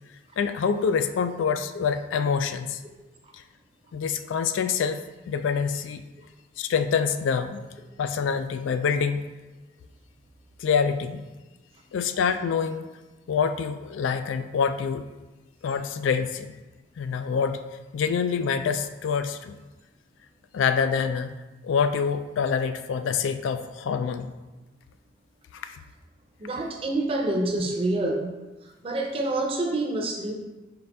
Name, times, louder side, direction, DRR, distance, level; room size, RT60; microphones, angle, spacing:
voice 1, 0.4-2.8 3.3-3.4 3.9-5.0 5.3-6.0 6.6-7.6 8.0-9.3 10.6-11.2 11.9-12.9 13.3-15.0 15.6-16.6 17.0-17.6 17.9-19.6 20.5-21.3 21.6-24.3 25.5-25.8, left 6 dB, 90° left, 9 dB, 0.3 m, -26 dB
voice 2, 26.4-28.2 28.8-30.3, right 2 dB, 30° right, 1 dB, 0.5 m, -27 dB
4.1 x 3.2 x 3.4 m, 1.1 s
head